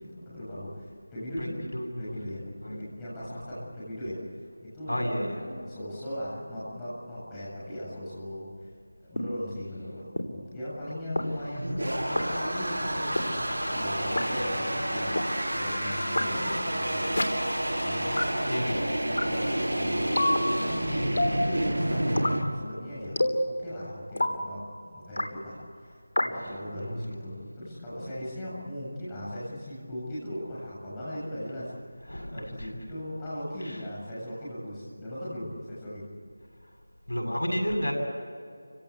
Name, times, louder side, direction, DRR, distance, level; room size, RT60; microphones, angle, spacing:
voice 1, 0.0-1.6 2.0-4.9 5.2-8.7 9.0-17.1 17.8-18.5 18.8-31.7 32.0-36.1, equal, 10° left, -9 dB, 7.5 m, -38 dB
voice 2, 1.4-2.2 2.6-2.8 3.2-3.4 4.9-5.4 18.4-18.9 20.9-21.2 26.7-27.2 28.0-28.1 32.1-32.9 33.6-33.8 36.6-36.7 37.1-37.9, equal, 85° left, 0 dB, 7.9 m, -32 dB
sound 1, 9.2-9.3 10.2-10.3 11.2-11.3 12.2-12.3 13.2-13.3 14.2-14.3 15.2-15.3 16.2-16.3 17.2-17.3 18.2-18.3 19.2-19.3 20.2-20.4 21.2-21.4 22.2-22.4 23.2-23.4 24.2-24.4 25.2-25.3 26.2-26.3, left 1 dB, 70° left, 3.2 m, -25 dB
sound 2, 11.2-22.4, right 1 dB, 65° right, 7.5 m, -29 dB
30.0 x 17.0 x 8.4 m, 2.3 s
figure-of-eight pair, 170°, 0 cm